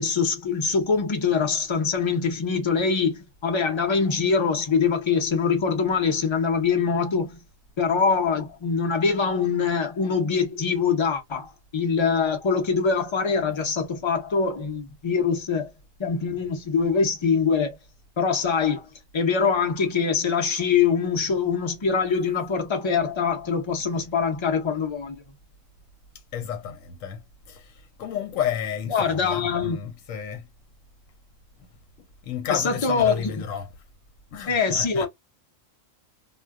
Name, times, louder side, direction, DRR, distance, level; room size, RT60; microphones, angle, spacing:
voice 1, 0.0-7.4 7.8-15.7 16.0-17.7 18.2-18.9 19.1-25.2 28.9-29.8 32.5-33.4 34.5-35.1, left 5 dB, 35° left, 0.5 m, -23 dB
voice 2, 26.3-30.5 32.2-33.7 34.3-35.1, left 8 dB, 85° left, 1.0 m, -32 dB
2.2 x 2.1 x 3.5 m
omnidirectional pair, 1.4 m